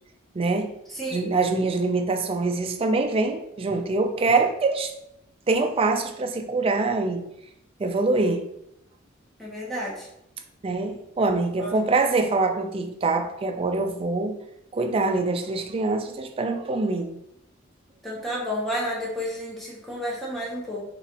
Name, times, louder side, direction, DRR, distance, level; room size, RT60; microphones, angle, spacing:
voice 1, 0.3-0.7 1.1-4.9 5.5-7.3 7.8-8.4 10.6-14.4 14.7-17.2, right 3 dB, 30° right, 5 dB, 0.3 m, -24 dB
voice 2, 9.4-10.1 11.6-11.7 18.0-20.8, equal, ahead, -5 dB, 1.0 m, -31 dB
4.1 x 3.1 x 2.9 m, 0.79 s
head